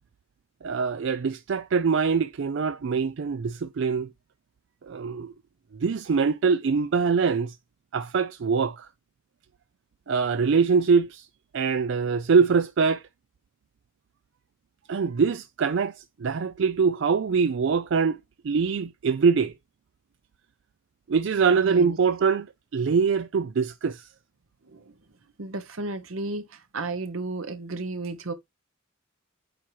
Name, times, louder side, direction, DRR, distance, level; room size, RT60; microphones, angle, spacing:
voice 1, 0.6-4.1 4.8-5.3 5.7-7.5 7.9-8.9 10.1-11.3 11.5-13.0 14.9-18.2 18.4-19.5 21.1-24.1, right 5 dB, 60° right, 0.4 m, -23 dB
voice 2, 21.6-22.0 24.7-24.8 25.4-26.4 26.7-28.3, right 2 dB, 90° right, 1.1 m, -33 dB
8.6 x 2.9 x 4.5 m
head